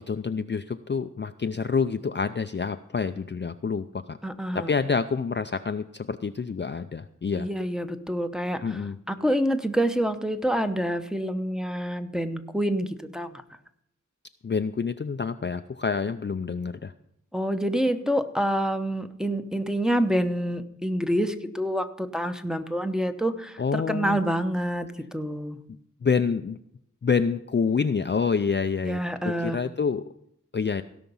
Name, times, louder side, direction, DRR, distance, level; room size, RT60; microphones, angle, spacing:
voice 1, 0.0-4.2 4.5-7.5 8.6-9.0 14.4-16.9 23.6-24.2 26.0-26.6 27.0-30.0 30.5-30.8, left 5 dB, 35° left, 9 dB, 0.4 m, -27 dB
voice 2, 4.2-4.7 7.4-8.8 9.1-13.4 17.3-25.6 28.8-29.6, equal, ahead, 7 dB, 0.8 m, -27 dB
16.5 x 5.9 x 5.4 m, 0.74 s
wide cardioid pair, 70°, 31 cm